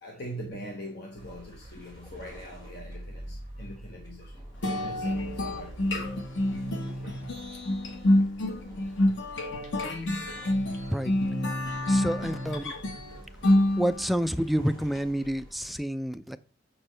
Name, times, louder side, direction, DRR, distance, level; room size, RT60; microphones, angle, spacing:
voice 1, 0.0-6.7 7.0-7.4, equal, 60° left, 1.2 m, -43 dB
sound 1, 1.2-15.8, right 1 dB, 25° left, 3.3 m, -47 dB
sound 2, 4.6-14.3, left 1 dB, 80° left, 1.3 m, -27 dB
voice 2, 11.9-12.6 13.8-16.4, equal, ahead, 0.3 m, -28 dB
7.4 x 6.1 x 3.3 m
head